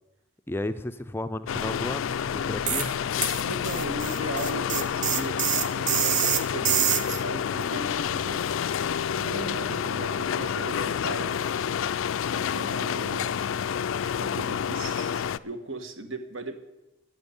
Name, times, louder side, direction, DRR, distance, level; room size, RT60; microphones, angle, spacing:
voice 1, 0.5-2.9, left 1 dB, 10° left, 11 dB, 0.4 m, -33 dB
sound 1, 1.5-15.4, left 8 dB, 80° left, 0.4 m, -29 dB
sound 2, 2.7-2.9 3.2-7.2, right 9 dB, 40° right, 0.6 m, -26 dB
voice 2, 3.4-8.4 9.1-11.4 12.3-13.4 14.2-16.6, right 1 dB, 80° right, 8 dB, 1.4 m, -37 dB
12.5 x 7.2 x 9.7 m, 0.97 s
head